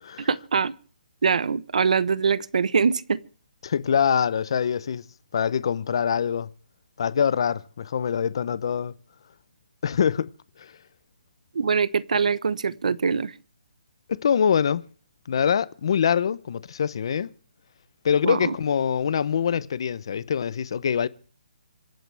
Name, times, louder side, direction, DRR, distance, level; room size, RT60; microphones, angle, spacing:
voice 1, 0.2-0.7 1.2-3.2 11.5-13.3 18.2-18.5, right 5 dB, 55° right, 1.0 m, -23 dB
voice 2, 3.6-5.0 5.3-6.5 7.0-8.9 9.8-10.3 10.6-10.7 14.1-14.9 15.3-17.3 18.0-21.1, left 7 dB, 35° left, 0.7 m, -24 dB
26.0 x 13.0 x 3.4 m
hypercardioid pair, 180°, 5 cm